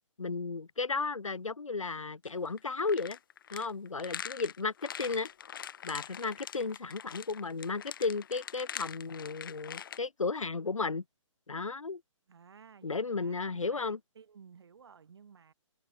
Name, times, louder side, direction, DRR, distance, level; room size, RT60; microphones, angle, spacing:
voice 1, 0.2-3.2 3.5-5.3 5.8-11.0 11.5-12.0 12.8-14.0, left 4 dB, 75° left, 0.8 m, -34 dB
sound 1, 2.2-10.0, left 8 dB, 40° left, 1.6 m, -44 dB
voice 2, 12.3-13.8 14.1-15.5, right 6 dB, 50° right, 3.2 m, -56 dB
figure-of-eight pair, 135°, 17 cm